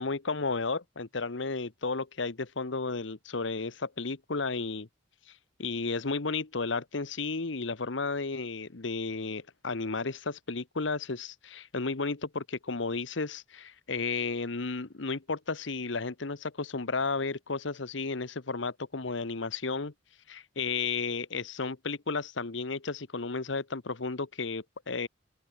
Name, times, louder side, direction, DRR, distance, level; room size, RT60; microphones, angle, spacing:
voice 1, 0.0-4.9 5.3-19.9 20.3-25.1, left 4 dB, 65° left, 1.1 m, -33 dB
open air
head